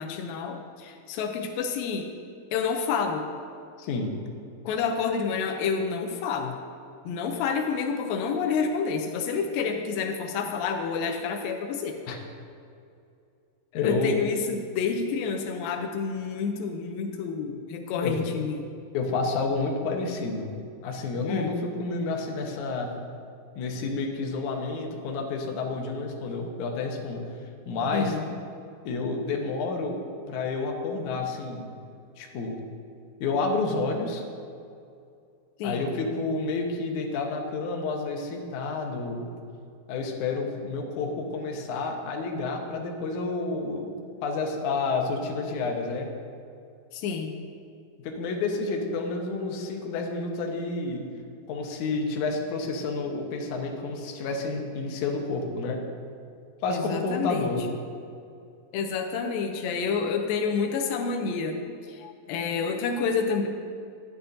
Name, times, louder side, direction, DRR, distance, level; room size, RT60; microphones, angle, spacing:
voice 1, 0.0-2.1 2.5-3.3 4.6-6.6 7.1-12.0 13.8-18.7 21.3-21.5 27.9-28.3 35.6-35.9 46.9-47.4 56.7-57.5 58.7-61.6 61.9-63.5, left 5 dB, 85° left, 4 dB, 2.5 m, -29 dB
voice 2, 3.8-4.1 12.1-12.2 13.7-14.2 18.0-18.2 18.9-20.5 20.8-22.9 23.6-28.2 28.9-30.0 30.3-31.7 32.2-32.6 33.2-34.3 35.6-39.3 39.9-43.9 44.2-46.1 48.0-51.0 51.5-55.8 56.6-57.6, left 3 dB, 70° left, 1 dB, 2.2 m, -30 dB
12.5 x 9.9 x 2.7 m, 2.4 s
omnidirectional pair, 4.0 m